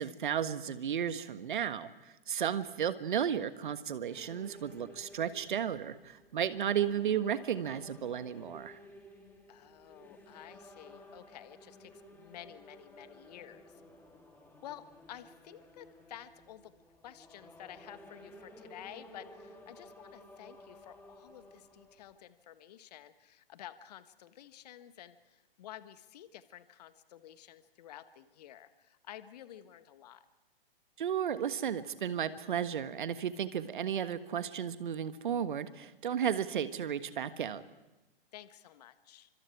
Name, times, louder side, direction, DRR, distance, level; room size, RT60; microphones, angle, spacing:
voice 1, 0.0-8.8 31.0-37.6, right 8 dB, 55° right, 13 dB, 1.5 m, -34 dB
sound 1, 4.1-22.2, left 1 dB, 5° left, 3.3 m, -55 dB
voice 2, 9.5-13.8 14.6-30.2 38.3-39.3, left 11 dB, 40° left, 13 dB, 1.5 m, -51 dB
29.5 x 25.5 x 4.8 m, 1.0 s
figure-of-eight pair, 120°, 30 cm